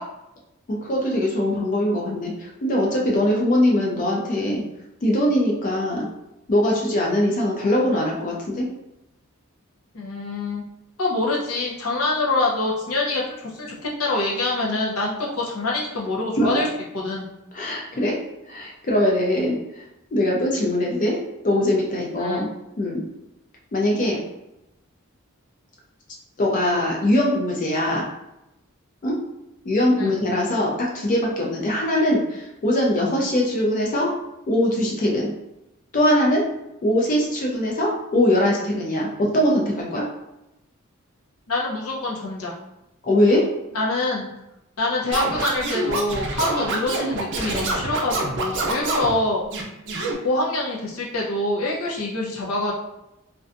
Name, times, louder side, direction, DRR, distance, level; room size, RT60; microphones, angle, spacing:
voice 1, 0.7-4.6 5.0-6.1 6.5-8.7 16.4-16.6 17.5-18.2 18.5-19.6 20.1-21.2 21.4-22.5 22.8-23.0 23.7-24.2 26.4-28.1 29.0-29.2 29.6-34.1 34.5-35.3 35.9-36.4 36.8-40.1 43.0-43.5, left 1 dB, 35° left, -2 dB, 0.4 m, -21 dB
voice 2, 9.9-10.6 11.0-16.7 16.9-17.2 22.2-22.4 30.0-30.1 41.5-42.5 43.7-44.3 44.8-49.4 50.2-52.7, left 2 dB, 90° left, -3 dB, 0.7 m, -25 dB
Scratching (performance technique), 45.1-49.1 49.5-50.1, right 2 dB, 55° right, 0.5 m, -26 dB
2.5 x 2.2 x 2.5 m, 0.90 s
head